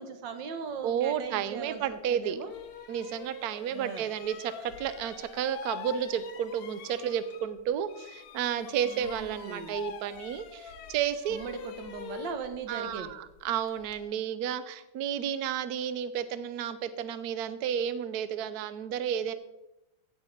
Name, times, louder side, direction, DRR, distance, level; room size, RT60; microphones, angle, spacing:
voice 1, 0.0-2.5 3.7-4.1 8.8-9.8 11.3-13.2, right 5 dB, 60° right, 8 dB, 1.6 m, -39 dB
voice 2, 0.8-2.4 2.9-11.4 12.7-19.3, right 9 dB, 85° right, 13 dB, 0.8 m, -32 dB
sound 1, 1.8-1.9 2.4-7.6 7.9-14.0, left 8 dB, 85° left, 1.8 m, -45 dB
16.0 x 5.7 x 4.4 m, 0.91 s
omnidirectional pair, 2.4 m